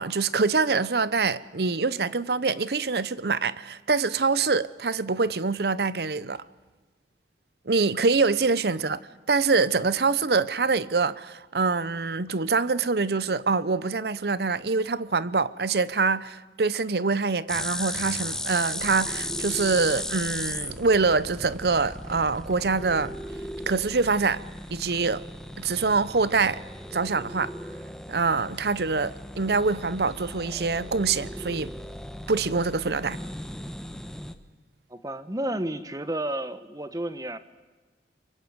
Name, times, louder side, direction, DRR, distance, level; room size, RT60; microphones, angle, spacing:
voice 1, 0.0-6.4 7.7-9.0 9.3-23.1 23.7-24.4 24.7-25.2 25.6-26.6 26.9-27.5 28.1-31.7 32.3-33.2, right 4 dB, 65° right, 0.8 m, -25 dB
sound 1, 17.5-34.3, left 1 dB, 5° left, 1.1 m, -36 dB
voice 2, 34.9-37.4, right 1 dB, 20° right, 1.1 m, -31 dB
24.0 x 23.0 x 8.0 m
head